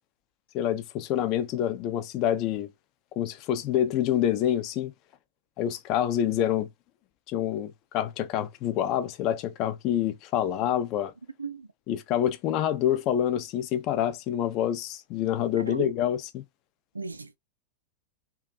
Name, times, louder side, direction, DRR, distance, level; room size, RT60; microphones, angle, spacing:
voice 1, 0.5-2.7 3.2-4.9 5.6-6.7 7.3-11.1 11.9-16.4, left 10 dB, 40° left, 0.4 m, -27 dB
voice 2, 15.6-15.9 16.9-17.4, right 3 dB, 80° right, 0.3 m, -35 dB
2.4 x 2.3 x 2.4 m
figure-of-eight pair, 90°, 0 cm